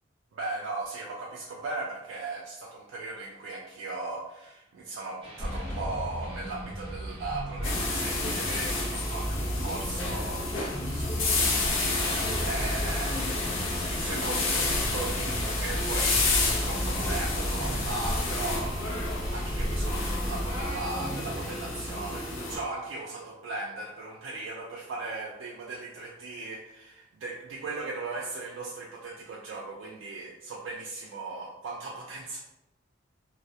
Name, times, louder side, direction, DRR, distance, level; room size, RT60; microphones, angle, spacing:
voice 1, 0.3-10.5 10.9-12.0 12.4-13.2 13.5-32.4, right 3 dB, 80° right, -3 dB, 0.3 m, -38 dB
sound 1, 5.2-21.6, right 1 dB, 25° right, 0.5 m, -41 dB
sound 2, 5.4-20.9, equal, 30° left, 0.7 m, -34 dB
sound 3, 7.6-22.6, left 3 dB, 80° left, 0.5 m, -30 dB
2.2 x 2.0 x 2.7 m, 0.88 s
head